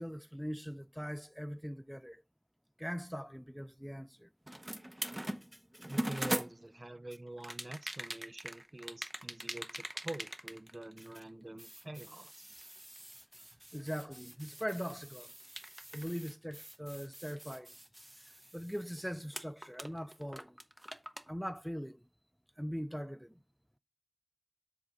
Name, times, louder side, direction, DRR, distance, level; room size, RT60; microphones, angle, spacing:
voice 1, 0.0-2.2 2.8-4.3 5.5-5.9 11.0-11.1 13.7-15.3 15.9-17.7 18.5-20.6 21.3-22.1 22.6-23.4, equal, ahead, 0.4 m, -41 dB
sound 1, 4.5-6.9 7.4-11.3 11.6-19.0 19.3-21.3, right 1 dB, 25° right, 0.8 m, -42 dB
voice 2, 5.9-12.7, right 1 dB, 50° right, 0.5 m, -46 dB
7.4 x 4.0 x 5.0 m
wide cardioid pair, 40°, 0 cm